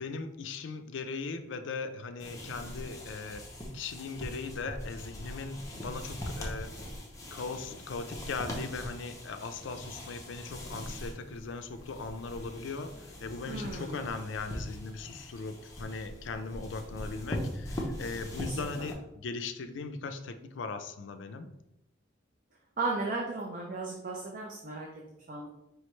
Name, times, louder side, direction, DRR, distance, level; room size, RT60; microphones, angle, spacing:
voice 1, 0.0-3.5 3.7-6.7 7.3-21.5, left 4 dB, 70° left, 8 dB, 0.4 m, -39 dB
sound 1, 2.2-18.9, equal, 15° left, 0.7 m, -41 dB
voice 2, 13.5-14.1 18.4-18.9 22.8-24.9 25.3-25.5, right 3 dB, 45° right, -1 dB, 0.5 m, -35 dB
4.7 x 3.2 x 3.1 m, 0.87 s
head